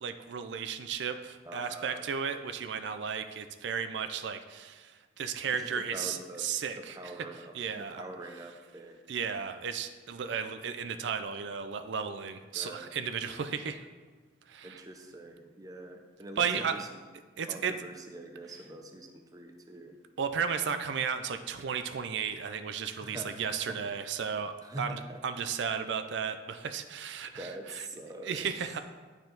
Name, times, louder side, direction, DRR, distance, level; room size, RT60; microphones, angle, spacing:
voice 1, 0.0-8.0 9.1-13.8 14.5-14.9 16.4-16.8 17.4-17.8 20.2-27.9 28.2-28.8, right 6 dB, 75° right, 9 dB, 0.4 m, -34 dB
voice 2, 1.5-2.1 5.5-6.4 6.8-9.0 12.6-12.9 14.6-16.9 17.5-20.0 23.0-23.3 23.7-23.8 24.6-25.2 27.4-28.4, right 1 dB, 20° right, 4 dB, 0.5 m, -44 dB
9.5 x 4.5 x 3.9 m, 1.4 s
head